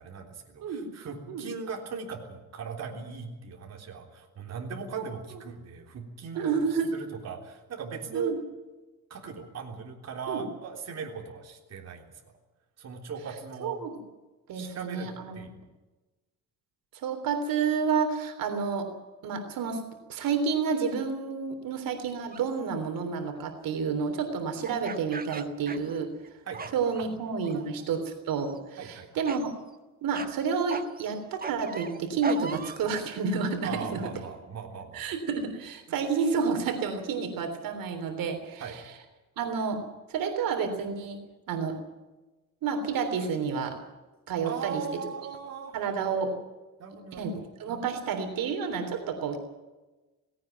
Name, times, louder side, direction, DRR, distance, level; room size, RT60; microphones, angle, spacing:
voice 1, 0.0-8.3 9.1-12.1 12.8-13.8 14.5-15.6 26.5-27.1 27.5-27.7 28.8-29.2 33.6-35.0 35.9-36.0 38.6-38.8 44.4-45.8 46.1-46.4 46.8-47.4, right 5 dB, 50° right, 2 dB, 3.6 m, -39 dB
voice 2, 6.4-6.9 8.1-8.4 10.3-10.4 13.6-13.9 14.5-15.4 16.9-18.9 19.2-19.8 20.1-26.1 26.7-29.5 30.0-34.0 34.9-38.8 39.4-39.8 40.1-41.2 41.5-41.8 42.6-43.8 44.3-44.8 45.7-46.3 47.1-49.4, right 5 dB, 80° right, 6 dB, 3.4 m, -30 dB
sound 1, 22.3-22.6 24.6-26.3 26.5-27.0 27.4-27.9 28.3-28.6 29.2-29.5 30.1-30.3 30.7-32.9, right 5 dB, 25° right, 1.3 m, -38 dB
18.0 x 17.5 x 9.2 m, 1.1 s
cardioid pair, 145°, 34 cm